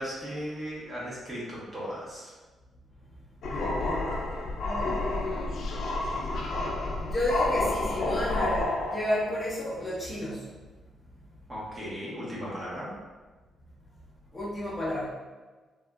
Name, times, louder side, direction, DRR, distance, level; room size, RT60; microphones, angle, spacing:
voice 1, 0.0-2.3 11.5-12.9, equal, 25° right, -7 dB, 1.0 m, -36 dB
sound 1, 3.4-9.4, left 2 dB, 65° left, 0.5 m, -30 dB
voice 2, 3.5-4.1 4.6-5.6 6.3-10.4 14.3-15.1, left 1 dB, 10° left, -8 dB, 0.8 m, -32 dB
3.5 x 2.5 x 2.2 m, 1.3 s
cardioid pair, 120°, 0 cm